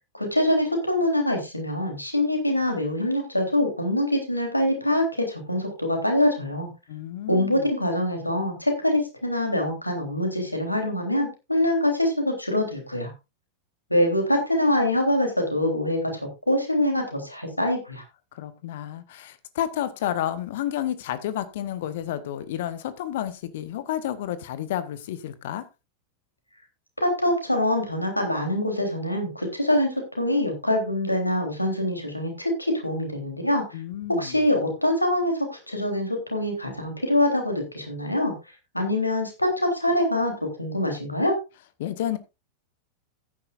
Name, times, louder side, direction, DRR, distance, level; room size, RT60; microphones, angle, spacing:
voice 1, 0.1-6.7 7.3-13.1 13.9-16.2 16.5-18.0 27.0-33.6 34.1-38.3 38.7-41.4, left 1 dB, 85° left, 3.5 m, -24 dB
voice 2, 6.9-7.6 18.3-25.6 33.7-34.4 41.8-42.2, left 11 dB, 55° left, 1.1 m, -30 dB
15.0 x 10.0 x 2.5 m
figure-of-eight pair, 90°, 0 cm